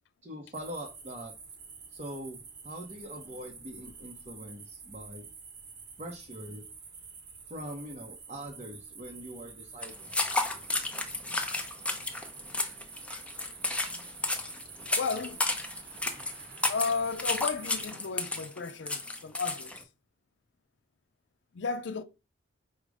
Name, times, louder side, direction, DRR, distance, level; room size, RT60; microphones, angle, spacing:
voice 1, 0.2-1.3 1.9-5.3 6.0-6.6 7.5-10.1, equal, 35° right, 0.7 m, -42 dB
sound 1, 0.5-17.9, right 5 dB, 60° right, 1.0 m, -48 dB
sound 2, 9.8-19.8, left 2 dB, 5° left, 0.5 m, -32 dB
voice 2, 14.9-15.4 16.7-19.8 21.5-22.0, left 5 dB, 65° left, 0.4 m, -33 dB
5.0 x 2.1 x 4.8 m
head